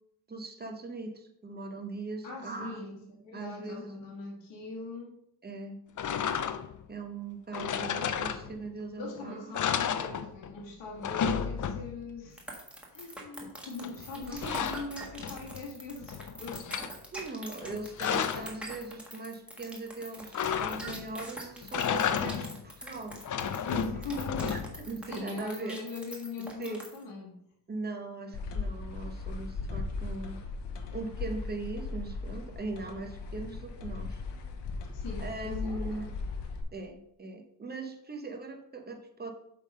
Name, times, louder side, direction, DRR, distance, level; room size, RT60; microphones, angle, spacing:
voice 1, 0.3-2.8 3.3-3.9 5.4-5.8 6.9-9.7 14.3-14.6 17.1-25.8 26.6-26.8 27.7-30.4 30.9-34.2 35.2-36.1 36.7-39.3, right 3 dB, 20° right, 4 dB, 1.0 m, -40 dB
voice 2, 2.2-2.9 3.2-5.1 9.0-12.4 12.9-16.7 23.6-24.5 25.1-27.4 34.9-36.0, left 3 dB, 90° left, -3 dB, 1.8 m, -41 dB
sound 1, 6.0-6.8 7.5-8.8 9.2-9.3 9.5-10.6 10.9-12.1 13.8-15.6 16.0-16.9 17.6-18.6 20.3-21.1 21.6-22.6 23.1-24.9, left 8 dB, 45° left, 0.5 m, -32 dB
sound 2, 12.4-27.0, right 1 dB, 5° right, 1.5 m, -44 dB
sound 3, 28.3-36.6, left 4 dB, 70° left, 1.1 m, -37 dB
8.1 x 3.7 x 5.3 m, 0.77 s
wide cardioid pair, 140°, 43 cm